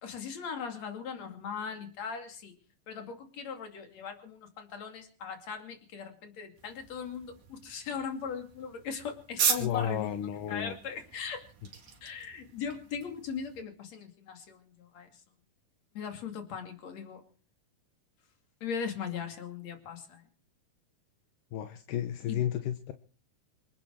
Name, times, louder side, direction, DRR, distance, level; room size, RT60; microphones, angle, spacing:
voice 1, 0.0-2.5 2.9-10.1 10.5-11.5 12.0-15.1 16.0-17.2 18.6-20.2 22.3-22.4, left 6 dB, 55° left, 6 dB, 3.6 m, -39 dB
sound 1, 6.6-13.6, right 6 dB, 70° right, 3.8 m, -37 dB
voice 2, 9.6-10.8 21.5-22.9, left 10 dB, 80° left, 8 dB, 2.6 m, -32 dB
26.5 x 10.0 x 4.7 m, 0.41 s
omnidirectional pair, 3.8 m